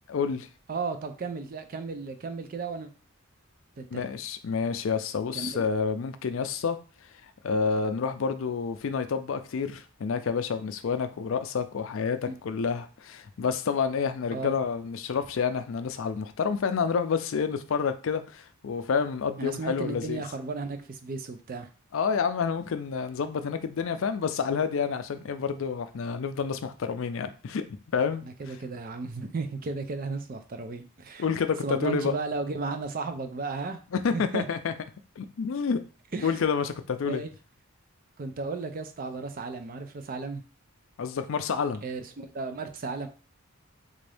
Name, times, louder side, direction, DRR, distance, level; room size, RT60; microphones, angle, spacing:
voice 1, 0.1-0.5 3.9-6.8 7.4-20.2 21.9-27.6 27.9-28.2 31.2-32.1 33.9-34.7 35.2-35.8 36.2-37.2 41.0-41.8, left 6 dB, 60° left, 9 dB, 0.4 m, -29 dB
voice 2, 0.7-2.9 3.8-4.1 5.3-5.6 12.3-12.4 14.3-14.5 19.4-21.7 28.2-31.3 31.6-33.8 34.1-34.4 36.1-36.4 37.0-37.3 38.2-40.4 41.8-43.1, right 3 dB, 40° right, 8 dB, 0.4 m, -34 dB
3.6 x 2.6 x 3.3 m, 0.36 s
head